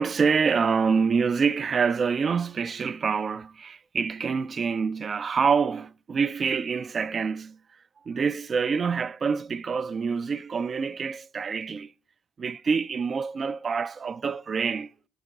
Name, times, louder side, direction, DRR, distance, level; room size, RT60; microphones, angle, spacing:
voice 1, 0.0-7.6 8.0-11.9 12.4-14.9, right 5 dB, 45° right, 0.3 m, -26 dB
12.0 x 4.8 x 3.4 m
hypercardioid pair, 45°, 0 cm